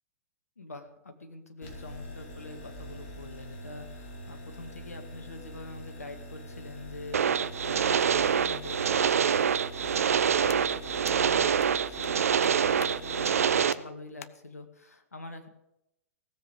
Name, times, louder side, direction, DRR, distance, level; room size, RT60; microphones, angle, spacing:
voice 1, 0.6-15.5, left 3 dB, 85° left, 7 dB, 2.0 m, -45 dB
sound 1, 1.6-13.6, equal, 45° left, 4.3 m, -44 dB
sound 2, 7.1-13.7, right 7 dB, 75° right, 0.7 m, -25 dB
sound 3, 10.5-10.6 11.0-11.2 11.6-11.7 12.0-12.1 12.4-12.5 12.8-12.9 13.3-13.4 13.7-13.8 14.2-14.3, left 8 dB, 70° left, 0.8 m, -44 dB
17.0 x 7.7 x 8.1 m, 0.87 s
figure-of-eight pair, 110°, 8 cm